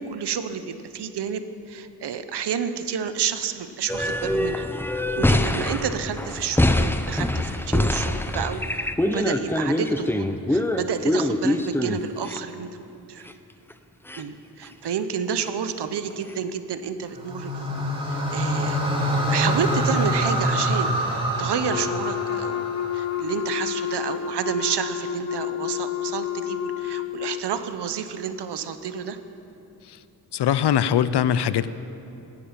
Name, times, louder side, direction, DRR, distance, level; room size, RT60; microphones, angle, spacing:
voice 1, 0.1-4.7 5.1-13.3 14.2-17.7 18.1-18.8 19.3-29.2, right 7 dB, 85° right, 10 dB, 1.0 m, -30 dB
sound 1, 3.9-12.4 13.3-13.4 13.7-13.8 14.1-14.2 14.7-14.8 16.3-16.4, left 1 dB, 5° left, 0.7 m, -24 dB
sound 2, 17.1-23.4, equal, 15° right, 3.3 m, -25 dB
Wind instrument woodwind instrument, 21.7-27.5, left 10 dB, 45° left, 0.7 m, -29 dB
voice 2, 30.3-31.7, left 9 dB, 85° left, 15 dB, 0.6 m, -21 dB
15.0 x 10.0 x 8.8 m, 2.8 s
wide cardioid pair, 100°, 40 cm